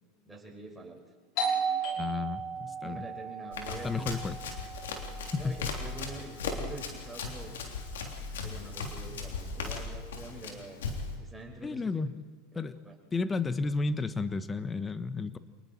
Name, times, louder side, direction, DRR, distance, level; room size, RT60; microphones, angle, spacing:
voice 1, 0.2-1.0 2.8-4.2 5.3-7.6 8.4-10.8 11.2-12.0 12.5-13.0, right 2 dB, 10° right, 0 dB, 5.8 m, -45 dB
Doorbell, 1.4-6.8, right 4 dB, 60° left, 5.4 m, -36 dB
voice 2, 2.0-3.1 3.8-4.4 5.2-5.6 11.6-12.1 12.5-12.8 13.1-15.4, left 4 dB, 20° left, 12 dB, 1.3 m, -32 dB
Run, 3.5-11.2, left 4 dB, 85° left, 3.4 m, -38 dB
27.5 x 20.0 x 4.6 m, 1.4 s
hypercardioid pair, 100°, 0 cm